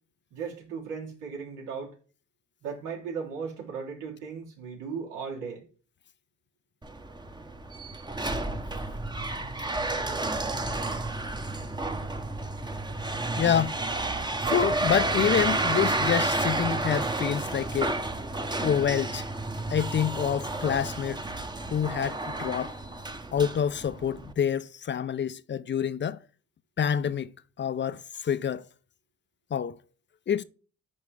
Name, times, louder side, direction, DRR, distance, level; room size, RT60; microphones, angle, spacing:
voice 1, 0.3-1.9 2.6-5.7, right 6 dB, 90° right, 3.2 m, -36 dB
sound 1, 6.8-24.3, right 2 dB, 15° right, 0.9 m, -31 dB
voice 2, 13.4-13.8 14.4-17.9 18.6-19.2 19.7-21.2 21.7-22.7 23.3-26.2 26.8-27.3 27.6-28.6 29.5-29.8 30.3-30.4, left 8 dB, 40° left, 0.5 m, -27 dB
10.5 x 3.6 x 3.3 m
cardioid pair, 90°, 30 cm